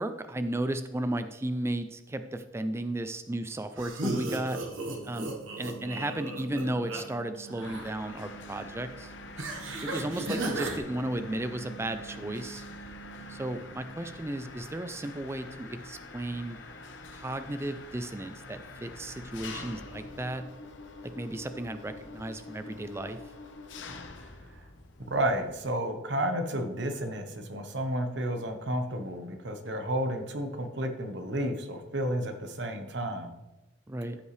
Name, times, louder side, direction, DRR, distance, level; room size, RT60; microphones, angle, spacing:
voice 1, 0.0-4.6 5.0-5.3 5.6-9.1 9.8-12.6 13.3-16.6 17.1-20.4 21.0-23.2 33.9-34.2, right 1 dB, 15° right, 9 dB, 0.4 m, -34 dB
sound 1, 3.8-7.0 7.3-7.9 9.4-10.8, right 2 dB, 80° right, 1.4 m, -35 dB
sound 2, 4.5-14.2, right 7 dB, 30° left, 0.9 m, -49 dB
Mechanisms, 7.6-25.7, left 3 dB, 65° left, 0.8 m, -46 dB
voice 2, 24.2-24.6 25.1-33.3, right 1 dB, 60° right, 6 dB, 1.1 m, -32 dB
14.0 x 5.4 x 3.3 m, 1.0 s
head